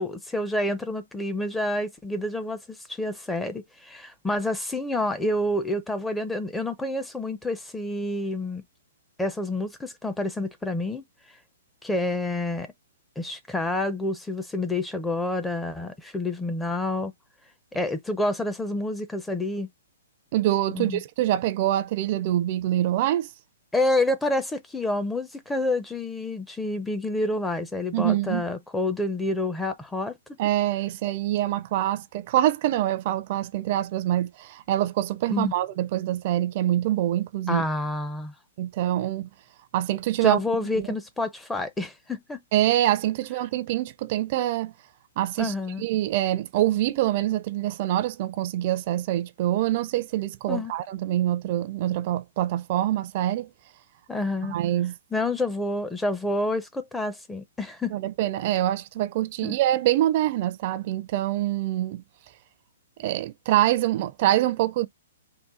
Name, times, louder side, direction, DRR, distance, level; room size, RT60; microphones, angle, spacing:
voice 1, 0.0-8.6 9.2-11.0 11.8-12.7 13.2-17.1 17.7-19.7 20.7-21.0 23.7-30.2 35.3-35.5 37.5-38.3 40.2-42.4 45.4-45.8 50.5-50.7 54.1-54.6 55.1-57.9 59.4-59.6, left 2 dB, 5° left, 0.5 m, -28 dB
voice 2, 20.3-23.3 27.9-28.4 30.4-37.6 38.6-39.3 39.7-40.4 40.8-40.9 42.5-44.7 45.2-53.5 54.5-54.9 57.9-62.0 63.0-64.9, right 13 dB, 45° right, 0.5 m, -25 dB
3.7 x 2.2 x 4.2 m
hypercardioid pair, 140°, 0 cm